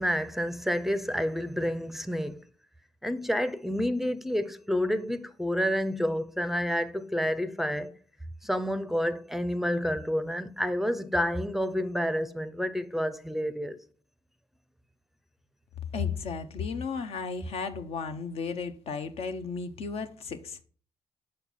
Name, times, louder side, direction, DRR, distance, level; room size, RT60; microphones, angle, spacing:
voice 1, 0.0-2.4 3.0-8.0 8.4-13.8, equal, ahead, 0.5 m, -29 dB
voice 2, 15.9-20.6, left 5 dB, 65° left, 0.6 m, -34 dB
6.1 x 4.5 x 4.1 m
supercardioid pair, 60°, 11 cm